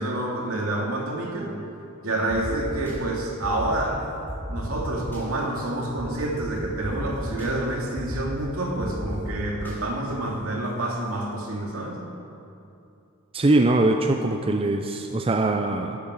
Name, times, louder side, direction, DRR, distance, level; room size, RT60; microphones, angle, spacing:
voice 1, 0.0-1.5 2.0-4.0 4.5-12.0, right 1 dB, 75° right, -1 dB, 2.3 m, -28 dB
sound 1, 2.3-2.9 3.4-3.8 4.3-5.2 6.0-6.1 6.4-6.5 6.8-7.5 8.0-8.3 8.8-9.7, equal, 10° left, 3.4 m, -34 dB
voice 2, 13.3-16.0, right 2 dB, 25° right, 5 dB, 0.5 m, -22 dB
12.0 x 8.7 x 7.3 m, 2.7 s
head